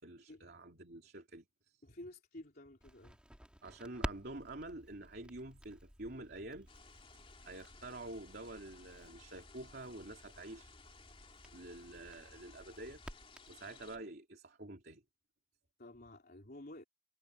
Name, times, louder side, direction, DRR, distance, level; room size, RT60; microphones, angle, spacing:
voice 1, 0.0-1.8 3.6-6.7 7.4-10.7 11.5-13.0 13.5-15.0, right 2 dB, 55° right, 3.2 m, -48 dB
voice 2, 1.8-3.2 15.8-16.8, left 1 dB, 50° left, 3.5 m, -52 dB
Crackle, 2.8-14.0, equal, 5° right, 3.2 m, -51 dB
sound 1, 6.7-14.0, left 5 dB, 30° left, 3.2 m, -60 dB
head